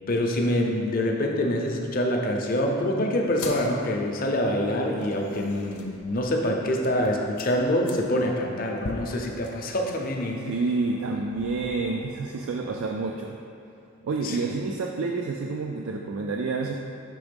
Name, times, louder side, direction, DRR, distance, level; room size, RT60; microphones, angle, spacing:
voice 1, 0.1-10.4 14.2-14.5, left 1 dB, 40° left, 1 dB, 0.6 m, -25 dB
sound 1, 3.2-12.8, left 2 dB, 85° left, 0.7 m, -44 dB
voice 2, 10.5-13.4 14.0-16.7, right 3 dB, 65° right, 1 dB, 0.3 m, -28 dB
6.1 x 3.5 x 5.1 m, 2.6 s
head